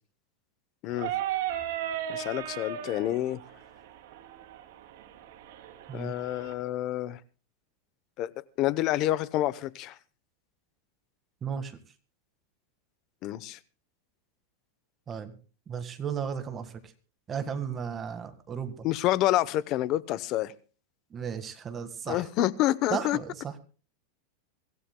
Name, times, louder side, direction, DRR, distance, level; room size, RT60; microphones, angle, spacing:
voice 1, 0.8-1.1 2.1-3.4 5.9-7.2 8.2-8.3 8.6-10.0 13.2-13.6 18.8-20.5 22.1-23.2, left 14 dB, 35° left, 0.8 m, -28 dB
sound 1, 0.9-6.5, right 10 dB, 60° right, 3.1 m, -36 dB
voice 2, 11.4-11.8 15.1-15.4 15.7-16.9 17.3-18.9 21.1-22.3 22.9-23.5, right 7 dB, 20° right, 1.7 m, -35 dB
24.0 x 15.5 x 2.2 m
supercardioid pair, 160°, 0 cm